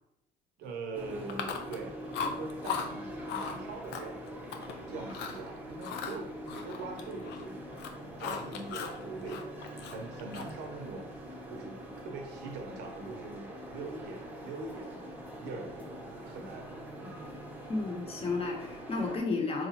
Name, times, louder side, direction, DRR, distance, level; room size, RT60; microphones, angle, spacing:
voice 1, 0.6-4.4 4.9-7.6 8.2-9.5 9.9-11.1 11.5-16.7 17.0-17.3, right 3 dB, 90° right, 2 dB, 0.8 m, -42 dB
sound 1, 0.9-19.2, equal, 10° right, 0.6 m, -44 dB
Chewing mastication, 1.3-1.8 2.1-2.9 3.3-3.6 3.9-4.7 5.1-5.4 5.8-7.5 7.7-9.0 9.3-10.6, left 6 dB, 85° left, 0.4 m, -37 dB
voice 2, 17.7-19.7, left 3 dB, 35° left, 1 dB, 0.8 m, -32 dB
3.9 x 2.4 x 2.8 m, 0.89 s
cardioid pair, 110°, 17 cm